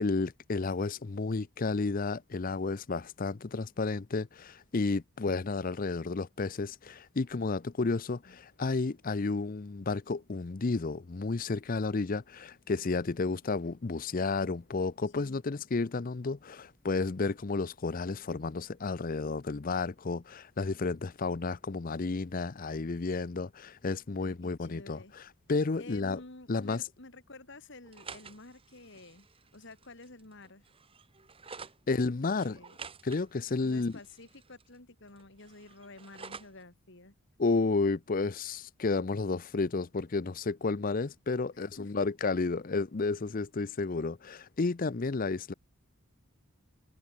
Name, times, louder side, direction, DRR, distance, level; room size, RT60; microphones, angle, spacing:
voice 1, 0.0-25.2 25.5-26.2 26.5-26.8 31.9-32.6 33.0-33.9 37.4-45.5, left 3 dB, 40° left, 0.5 m, -32 dB
voice 2, 24.2-25.1 25.8-29.3 29.5-30.7 32.0-32.1 32.4-32.8 33.6-37.2 41.5-42.1, left 2 dB, 55° left, 2.6 m, -51 dB
sound 1, 27.8-31.8 32.4-34.8 35.1-36.6, right 5 dB, 25° right, 1.3 m, -50 dB
head